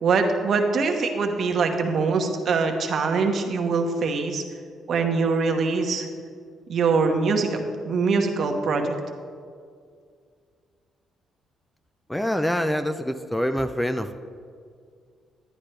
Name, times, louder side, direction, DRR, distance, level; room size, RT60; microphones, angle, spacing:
voice 1, 0.0-4.4 4.9-6.1 6.7-7.6 7.8-8.9, right 4 dB, 60° right, 4 dB, 1.2 m, -23 dB
voice 2, 12.1-14.2, equal, 5° left, 9 dB, 0.5 m, -25 dB
11.5 x 10.0 x 3.3 m, 2.2 s
cardioid pair, 90°, 0 cm